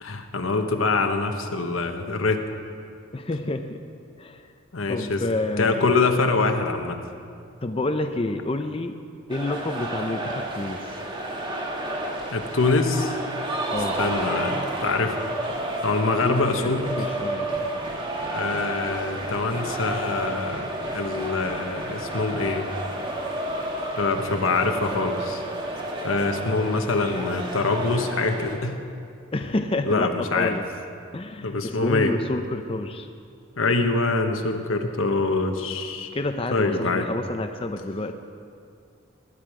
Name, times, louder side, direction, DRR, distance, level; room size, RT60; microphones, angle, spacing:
voice 1, 0.0-2.4 4.7-5.2 5.6-7.0 12.3-13.1 14.0-15.2 15.8-16.9 18.3-22.7 24.0-25.4 26.0-28.8 29.9-30.6 31.4-32.1 33.6-36.1 36.5-37.1, left 3 dB, 85° left, 5 dB, 1.2 m, -24 dB
voice 2, 3.1-3.8 4.2-4.5 4.9-6.0 7.6-9.0 9.3-10.8 13.7-14.0 16.2-16.7 17.0-17.5 29.3-30.6 31.1-33.1 36.1-38.1, left 2 dB, 30° left, 6 dB, 0.6 m, -29 dB
sound 1, 9.3-28.6, right 1 dB, 25° right, 1.5 m, -31 dB
20.0 x 11.0 x 4.9 m, 2.3 s
head